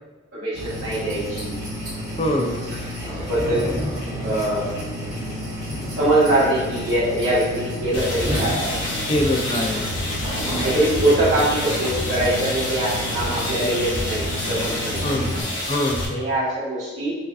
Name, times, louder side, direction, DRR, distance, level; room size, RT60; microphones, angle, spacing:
voice 1, 0.3-1.5 2.4-2.6 3.0-3.7 4.2-4.7 5.9-8.9 10.6-15.0 16.1-17.2, right 1 dB, 70° right, -13 dB, 1.0 m, -23 dB
sound 1, 0.5-15.4, equal, 15° right, 1.1 m, -30 dB
voice 2, 2.2-2.6 9.1-9.9 15.0-16.2, left 1 dB, 30° left, 2 dB, 0.4 m, -24 dB
sound 2, 7.9-16.1, left 1 dB, 75° left, 0.9 m, -28 dB
4.7 x 2.2 x 2.5 m, 1.2 s
head